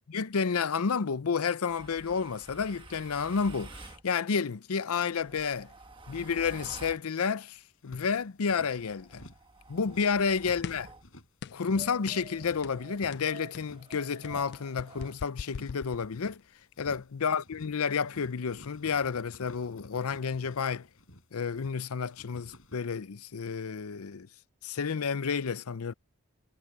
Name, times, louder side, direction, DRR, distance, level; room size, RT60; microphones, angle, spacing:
voice 1, 0.1-5.7 6.1-9.2 9.7-10.9 11.5-16.4 16.8-20.9 21.3-24.3 24.6-25.9, left 5 dB, 85° left, 0.6 m, -31 dB
sound 1, 1.7-4.0 5.0-7.1 8.7-11.1 11.7-15.2, right 2 dB, 25° right, 1.4 m, -50 dB
sound 2, 7.6-8.7 9.1-9.5 9.7-11.3 11.6-12.0 12.3-13.8 14.2-14.6 14.8-16.4 16.7-17.2 17.4-17.8 18.0-21.7 22.0-22.7, left 1 dB, 65° left, 7.8 m, -52 dB
sound 3, 10.6-11.0 11.4-11.7 12.1-12.3 12.6-12.8 13.1-16.4, left 6 dB, 50° left, 0.3 m, -42 dB
head